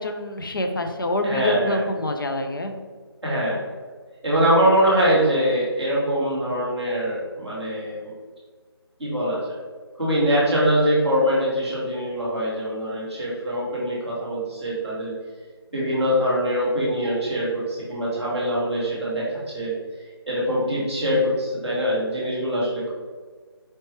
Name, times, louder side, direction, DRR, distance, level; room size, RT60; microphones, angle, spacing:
voice 1, 0.0-2.7, left 1 dB, 55° left, 5 dB, 0.5 m, -26 dB
voice 2, 1.2-1.9 3.2-3.6 4.2-8.1 9.0-9.5 10.0-15.1 15.7-19.7 20.3-22.9, equal, ahead, -17 dB, 0.5 m, -23 dB
4.3 x 3.1 x 3.1 m, 1.5 s
figure-of-eight pair, 170°, 14 cm